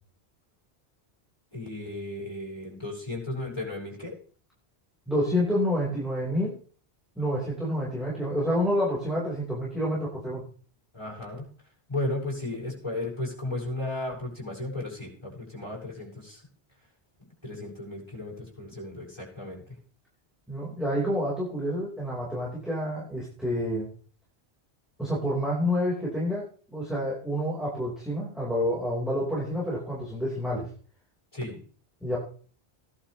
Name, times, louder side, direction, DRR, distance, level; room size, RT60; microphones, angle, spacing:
voice 1, 1.5-4.2 10.9-11.5 11.9-16.4 17.4-19.7 31.3-31.6, left 2 dB, 25° left, -3 dB, 7.8 m, -35 dB
voice 2, 5.1-6.6 7.1-10.4 20.5-23.9 25.0-30.7 32.0-32.2, equal, ahead, -6 dB, 5.0 m, -28 dB
18.5 x 11.5 x 3.4 m, 0.43 s
omnidirectional pair, 1.1 m